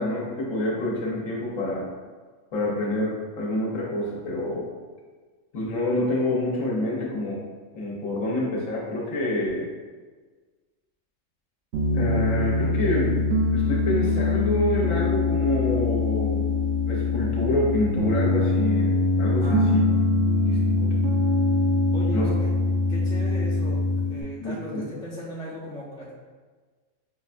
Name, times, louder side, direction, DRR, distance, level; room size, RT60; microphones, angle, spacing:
voice 1, 0.0-1.9 2.5-4.7 5.5-7.4 7.7-9.7 11.9-16.5 16.9-19.8 20.4-21.0 22.1-22.3 24.4-24.8, left 1 dB, 80° left, -4 dB, 1.3 m, -27 dB
Piano, 11.7-24.2, left 3 dB, 65° right, 0.7 m, -23 dB
voice 2, 19.4-20.0 21.9-22.5 22.9-23.8 24.1-26.1, left 1 dB, 5° left, -7 dB, 0.3 m, -37 dB
5.7 x 2.2 x 2.5 m, 1.4 s
omnidirectional pair, 1.3 m